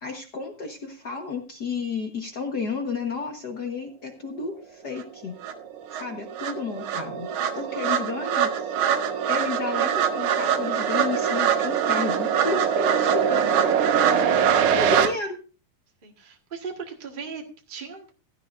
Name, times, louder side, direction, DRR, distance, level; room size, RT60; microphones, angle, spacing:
voice 1, 0.0-5.4 5.9-7.3 7.5-8.5 9.3-13.8 14.7-15.4, left 4 dB, 60° left, 4 dB, 1.0 m, -32 dB
sound 1, 5.0-5.1 5.4-15.1, right 8 dB, 75° right, 2.4 m, -23 dB
voice 2, 6.3-6.6 7.3-7.6 8.5-9.1 16.0-18.1, right 5 dB, 35° right, 1 dB, 0.8 m, -40 dB
16.5 x 12.0 x 2.6 m, 0.34 s
omnidirectional pair, 3.7 m